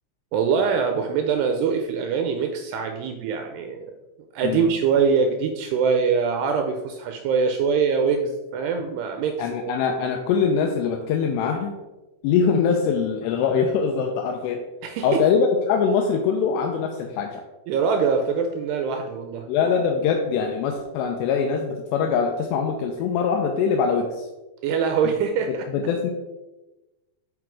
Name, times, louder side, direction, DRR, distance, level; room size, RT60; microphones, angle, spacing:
voice 1, 0.3-3.9 4.3-9.7 14.8-15.2 17.7-19.5 24.6-25.7, right 6 dB, 80° right, 5 dB, 2.5 m, -23 dB
voice 2, 9.4-11.8 12.2-14.6 15.0-17.4 19.5-24.3 25.0-25.1 25.5-26.1, left 6 dB, 80° left, 2 dB, 2.7 m, -23 dB
8.0 x 4.9 x 4.7 m, 1.1 s
omnidirectional pair, 5.2 m